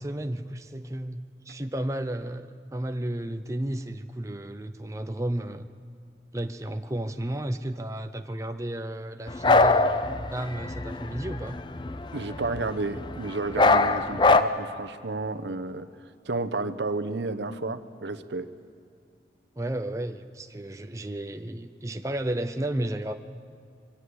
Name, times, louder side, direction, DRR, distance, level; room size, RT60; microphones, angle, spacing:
voice 1, 0.0-5.7 6.3-11.6 19.6-23.1, right 1 dB, 15° right, 7 dB, 0.6 m, -33 dB
sound 1, 9.3-13.2 13.5-14.4, left 3 dB, 25° left, 0.6 m, -22 dB
voice 2, 12.1-15.9 16.3-18.5, right 3 dB, 80° right, 10 dB, 1.0 m, -31 dB
23.0 x 18.0 x 8.0 m, 2.3 s
head